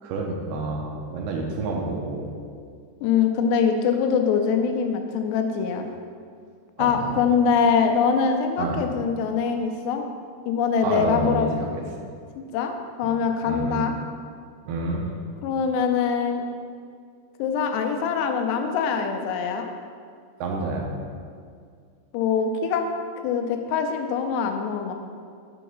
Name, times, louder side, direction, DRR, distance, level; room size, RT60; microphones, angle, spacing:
voice 1, 0.0-2.3 6.8-7.2 8.6-8.8 10.8-11.7 13.0-13.1 13.5-13.9 14.7-15.1 20.4-21.0, right 3 dB, 85° right, 0 dB, 2.5 m, -29 dB
voice 2, 3.0-5.9 6.8-10.0 10.5-11.5 12.5-12.7 13.0-13.9 15.4-16.4 17.4-19.7 22.1-22.9 23.2-24.9, left 6 dB, 90° left, 5 dB, 2.8 m, -23 dB
6.8 x 4.6 x 5.4 m, 2.2 s
omnidirectional pair, 4.8 m